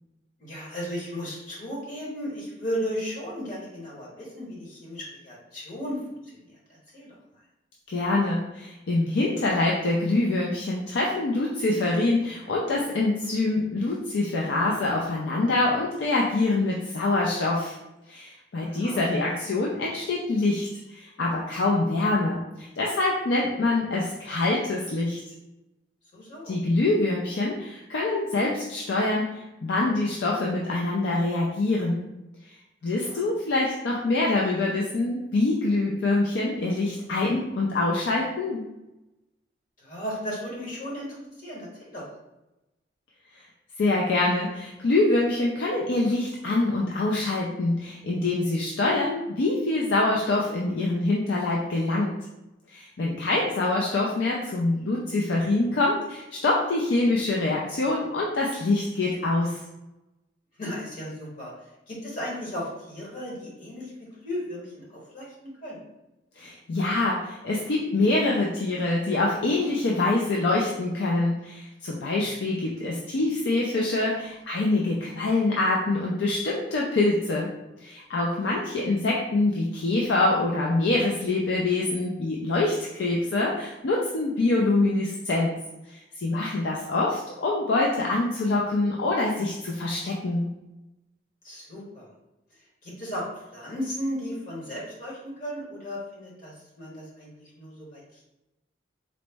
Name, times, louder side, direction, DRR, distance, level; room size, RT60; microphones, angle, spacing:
voice 1, 0.4-6.0 6.3-7.1 18.5-19.0 26.1-26.5 33.0-33.2 39.8-42.0 60.6-61.5 61.9-65.8 91.4-92.1 92.8-93.3 93.5-98.2, equal, 45° left, -5 dB, 1.0 m, -35 dB
voice 2, 7.9-17.8 18.1-25.2 26.5-32.1 32.5-32.6 32.8-38.7 43.3-43.4 43.8-52.1 52.7-59.6 66.4-77.5 77.8-85.5 85.9-90.5, left 2 dB, 70° left, -3 dB, 0.4 m, -25 dB
4.0 x 2.0 x 3.3 m, 0.95 s
head